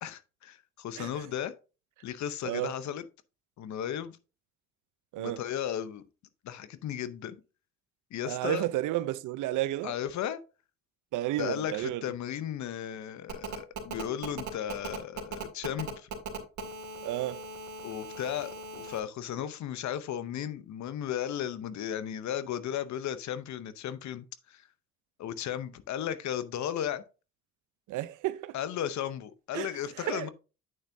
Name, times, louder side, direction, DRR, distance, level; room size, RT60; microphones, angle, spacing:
voice 1, 0.0-1.5 2.0-3.1 3.6-4.2 5.2-6.0 6.4-7.4 8.1-8.7 9.8-10.4 11.4-16.1 17.8-24.6 25.2-27.0 28.5-30.3, left 10 dB, 70° left, 0.7 m, -35 dB
voice 2, 2.4-2.7 5.1-5.4 8.2-9.9 11.1-12.1 17.0-17.4 27.9-28.6 29.5-29.7 30.0-30.3, right 15 dB, 85° right, 0.6 m, -32 dB
Telephone, 13.3-19.0, right 4 dB, 70° right, 2.3 m, -39 dB
8.7 x 6.9 x 2.6 m
cardioid pair, 90°, 30 cm